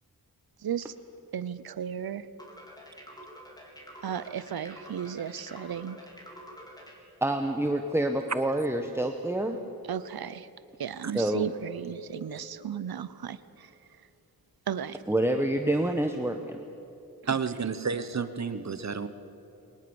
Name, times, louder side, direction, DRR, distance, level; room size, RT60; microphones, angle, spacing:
voice 1, 0.6-0.9 1.3-2.3 4.0-6.0 9.9-10.5 10.8-13.7 14.7-15.0, right 8 dB, 80° right, 15 dB, 0.8 m, -35 dB
sound 1, 2.4-7.0, equal, 10° left, 3.9 m, -47 dB
voice 2, 7.2-9.6 11.1-11.5 15.1-16.6, right 1 dB, 5° right, 5 dB, 1.1 m, -27 dB
voice 3, 17.3-19.1, right 5 dB, 50° right, 11 dB, 1.0 m, -31 dB
22.0 x 19.5 x 7.1 m, 3.0 s
wide cardioid pair, 90°, 36 cm